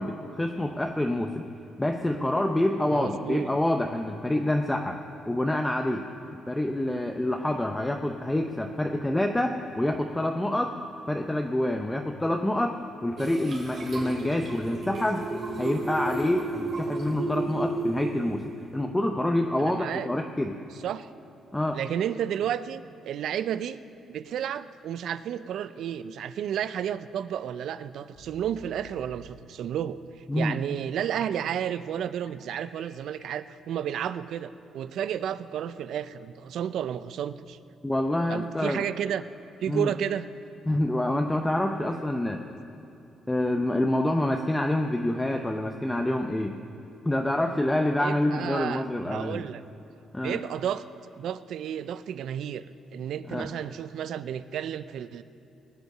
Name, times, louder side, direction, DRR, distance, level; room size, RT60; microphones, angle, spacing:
voice 1, 0.0-1.4 1.8-5.0 5.3-6.0 6.5-10.7 11.1-12.7 13.0-15.2 15.6-20.5 21.5-21.8 30.3-30.6 37.8-38.8 39.7-39.9 40.7-42.4 43.3-46.5 47.0-49.4 50.1-50.4 53.3-53.5, left 1 dB, 10° left, 3 dB, 0.7 m, -27 dB
voice 2, 2.8-3.5 19.6-20.1 20.8-21.1 21.7-23.8 24.1-37.6 38.3-39.2 39.6-40.3 48.0-49.6 50.2-50.9 51.2-55.2, right 9 dB, 75° right, 14 dB, 0.5 m, -32 dB
sound 1, 13.2-18.5, right 2 dB, 55° right, 3.1 m, -33 dB
sound 2, 28.1-29.2 31.7-33.4, right 1 dB, 75° left, 2.4 m, -52 dB
19.5 x 8.1 x 6.7 m, 2.9 s
cardioid pair, 90°, 0 cm